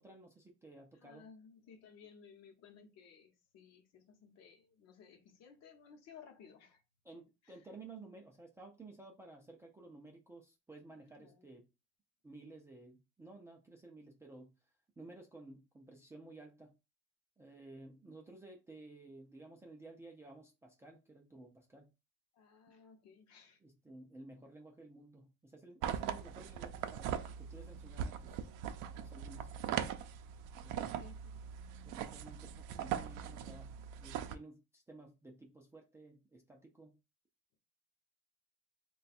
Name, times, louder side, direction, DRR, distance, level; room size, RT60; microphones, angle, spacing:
voice 1, 0.0-1.3 7.0-11.7 12.2-14.5 15.0-16.7 17.4-21.9 23.6-28.4 28.8-29.5 30.6-31.0 31.8-37.0, right 2 dB, 10° right, 0.3 m, -54 dB
voice 2, 0.9-6.8 7.4-7.6 11.2-11.5 22.3-23.6 30.8-31.5, left 6 dB, 55° left, 0.8 m, -58 dB
sound 1, 25.8-34.4, right 9 dB, 75° right, 0.5 m, -41 dB
3.2 x 2.3 x 4.1 m
cardioid pair, 170°, 31 cm